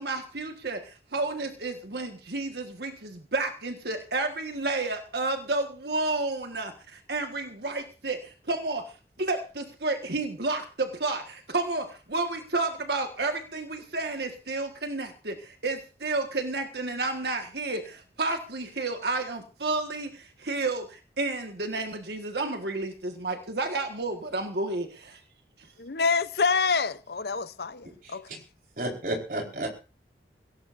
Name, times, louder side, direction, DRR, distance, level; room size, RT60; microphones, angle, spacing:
voice 1, 0.0-8.9 9.2-25.2 25.6-25.7, right 3 dB, 70° right, 1.6 m, -31 dB
voice 2, 25.8-28.4, left 5 dB, 65° left, 0.7 m, -27 dB
voice 3, 28.8-29.7, right 1 dB, 50° right, 4.6 m, -31 dB
22.0 x 17.0 x 2.6 m
head